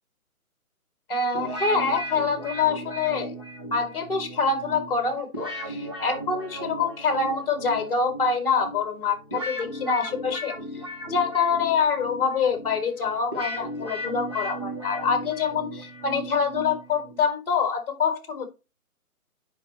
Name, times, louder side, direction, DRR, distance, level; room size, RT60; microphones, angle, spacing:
voice 1, 1.1-3.3 3.7-10.5 11.1-18.5, left 5 dB, 40° left, 9 dB, 1.6 m, -25 dB
sound 1, 1.3-17.3, equal, 20° right, 0.9 m, -36 dB
9.9 x 4.9 x 2.9 m, 0.28 s
hypercardioid pair, 175°, 43 cm